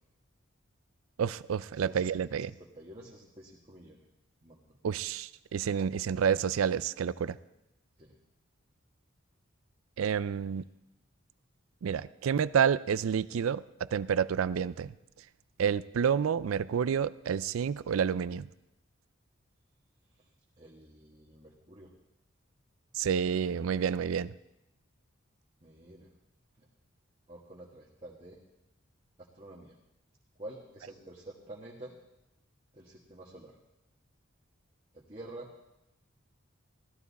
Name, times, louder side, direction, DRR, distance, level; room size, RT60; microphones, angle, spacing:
voice 1, 1.2-2.5 4.8-7.4 10.0-10.6 11.8-14.9 15.6-18.5 22.9-24.3, right 7 dB, 85° right, 18 dB, 0.4 m, -29 dB
voice 2, 1.7-2.1 2.5-4.0 4.4-4.8 8.0-8.2 20.1-20.3 20.6-21.9 25.6-26.1 26.6-26.7 27.3-28.4 29.2-29.7 30.4-31.9 32.7-33.6 34.9-35.5, right 1 dB, 30° right, -5 dB, 1.5 m, -49 dB
16.0 x 12.0 x 4.1 m, 0.92 s
head